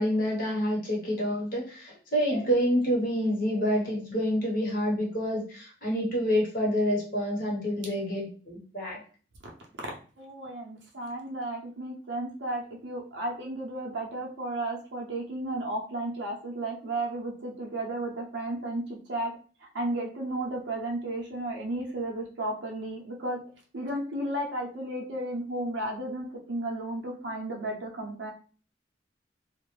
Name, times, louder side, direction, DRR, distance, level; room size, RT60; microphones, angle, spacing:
voice 1, 0.0-9.0, equal, 50° left, -4 dB, 1.1 m, -28 dB
voice 2, 10.2-19.3 19.6-23.4 23.7-28.3, right 1 dB, 80° right, -1 dB, 0.6 m, -33 dB
2.3 x 2.0 x 3.1 m, 0.40 s
head